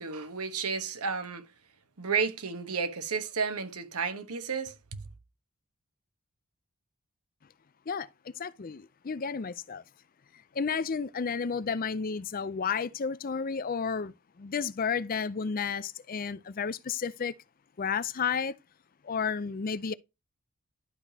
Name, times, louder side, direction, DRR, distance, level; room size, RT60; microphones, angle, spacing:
voice 1, 0.0-1.4 2.0-5.0, right 5 dB, 85° right, 1.3 m, -32 dB
voice 2, 7.9-9.8 10.5-17.3 17.8-18.5 19.0-19.9, left 6 dB, 40° left, 0.5 m, -32 dB
11.5 x 5.0 x 2.8 m
head